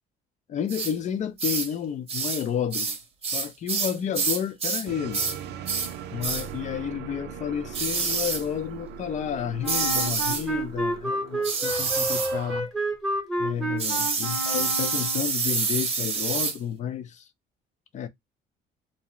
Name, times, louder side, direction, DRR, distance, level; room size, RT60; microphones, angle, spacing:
voice 1, 0.5-3.0 3.3-5.2 6.1-12.7 13.4-17.2 17.9-18.1, left 9 dB, 45° left, 0.5 m, -31 dB
sound 1, 0.7-0.9 1.4-1.7 2.1-2.4 2.7-4.9 5.1-5.4 5.7-5.9 6.2-6.5 7.7-8.4 9.7-10.5 11.4-12.3 13.8-16.6, right 5 dB, 35° right, 0.7 m, -27 dB
sound 2, 4.9-12.6, right 7 dB, 85° right, 0.5 m, -40 dB
Wind instrument woodwind instrument, 9.6-15.3, right 1 dB, ahead, 0.9 m, -30 dB
2.6 x 2.0 x 2.9 m
cardioid pair, 110°, 17 cm